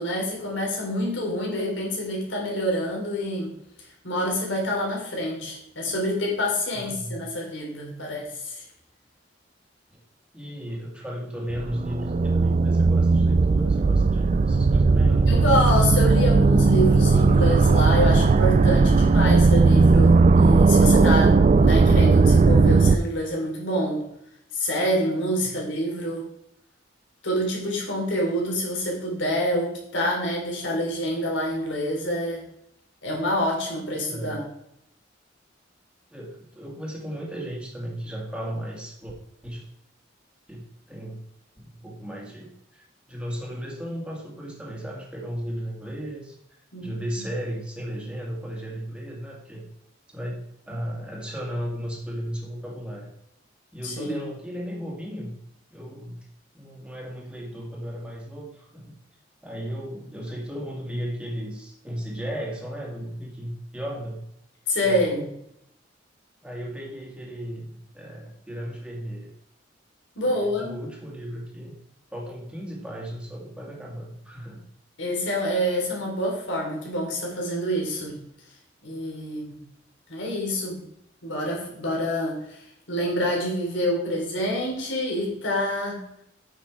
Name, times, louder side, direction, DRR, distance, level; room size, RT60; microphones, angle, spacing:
voice 1, 0.0-3.5 4.0-8.6 15.3-24.0 24.5-26.2 27.2-32.4 33.0-34.4 46.7-47.2 53.8-54.2 64.7-65.3 70.2-70.8 75.0-78.2 78.8-79.6 80.1-80.8 81.2-86.0, equal, 90° left, -1 dB, 3.6 m, -27 dB
voice 2, 6.7-7.2 9.9-10.0 10.3-15.3 25.4-25.5 34.1-34.5 36.1-39.2 39.4-39.7 40.5-40.6 40.9-41.2 41.6-46.4 46.8-49.7 50.1-50.4 50.7-53.1 53.7-55.4 55.7-56.3 56.5-58.9 59.4-64.2 64.8-65.3 66.4-69.3 70.2-71.7 72.1-74.6, equal, 5° right, -2 dB, 2.1 m, -35 dB
sound 1, 11.5-23.0, right 4 dB, 40° right, 0.3 m, -17 dB
8.8 x 6.7 x 4.6 m, 0.76 s
head